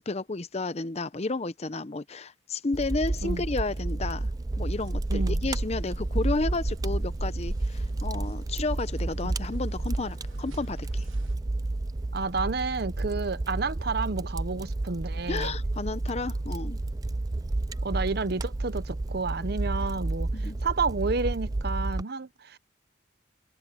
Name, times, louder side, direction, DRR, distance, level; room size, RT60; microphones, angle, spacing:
voice 1, 0.0-4.3 4.6-11.0 15.3-16.8 20.3-20.6, left 3 dB, 35° left, 0.6 m, -32 dB
Fire, 2.7-22.0, right 2 dB, 20° right, 0.3 m, -31 dB
sound 1, 4.4-11.4, left 1 dB, 55° left, 2.3 m, -59 dB
sound 2, 4.6-9.3 9.5-9.7 10.0-10.1 10.5-10.7 11.1-11.4, right 1 dB, 85° right, 1.3 m, -36 dB
voice 2, 5.1-5.4 9.2-9.3 12.1-15.5 16.5-16.6 17.8-22.6, right 4 dB, 55° right, 0.7 m, -31 dB
head